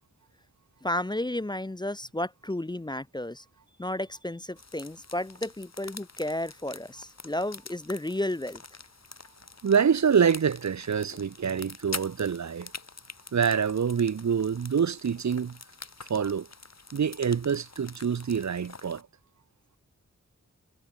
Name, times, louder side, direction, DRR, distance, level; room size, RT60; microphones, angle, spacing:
voice 1, 0.8-3.4 3.8-8.6, left 1 dB, 15° left, 0.6 m, -32 dB
sound 1, 4.6-19.0, left 4 dB, 60° left, 4.4 m, -46 dB
voice 2, 9.6-12.7 13.3-15.6 16.1-16.5 16.9-19.0, right 7 dB, 70° right, 0.8 m, -26 dB
wide cardioid pair, 80°, 29 cm